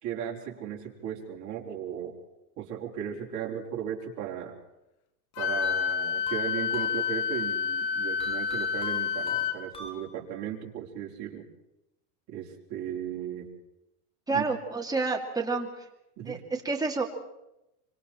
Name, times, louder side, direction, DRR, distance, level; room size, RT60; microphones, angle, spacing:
voice 1, 0.0-2.2 2.6-4.6 5.4-11.5 12.3-13.5 14.3-14.5 16.2-16.4, right 9 dB, 40° right, -1 dB, 4.4 m, -36 dB
Wind instrument woodwind instrument, 5.4-9.6, left 7 dB, 65° left, 2.4 m, -29 dB
sound 1, 5.6-7.4 8.2-10.5, left 1 dB, 10° left, 3.3 m, -44 dB
voice 2, 14.3-15.7 16.3-17.0, right 3 dB, 10° right, 2 dB, 2.5 m, -29 dB
25.5 x 25.5 x 4.4 m, 0.91 s
supercardioid pair, 135°, 46 cm